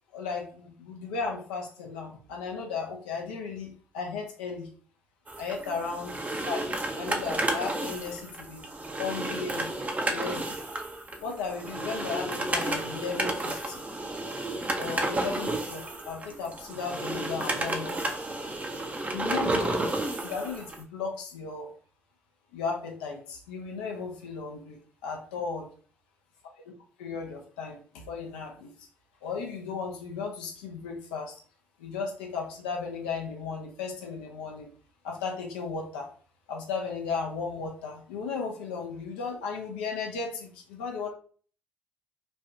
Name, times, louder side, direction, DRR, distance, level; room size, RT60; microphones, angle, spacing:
voice 1, 0.1-4.7 5.4-8.7 9.0-10.6 11.2-13.8 14.8-18.2 19.1-19.9 20.2-21.7 22.5-25.7 27.0-28.7 29.2-31.3 31.8-34.7 35.0-36.1 36.5-41.1, left 5 dB, 80° left, 1 dB, 0.6 m, -35 dB
sound 1, 5.3-20.8, right 2 dB, 25° right, 0.6 m, -32 dB
3.1 x 2.3 x 2.6 m, 0.44 s
hypercardioid pair, 45°, 6 cm